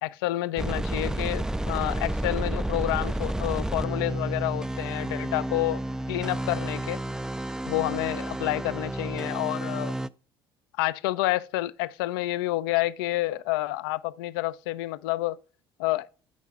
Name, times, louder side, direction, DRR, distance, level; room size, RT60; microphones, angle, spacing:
voice 1, 0.0-5.8 6.1-7.0 7.7-9.9 10.8-15.4 15.8-16.1, left 17 dB, 70° left, 0.4 m, -29 dB
sound 1, 0.6-10.1, right 1 dB, 5° right, 0.3 m, -31 dB
13.5 x 4.6 x 2.3 m
figure-of-eight pair, 60°, 12 cm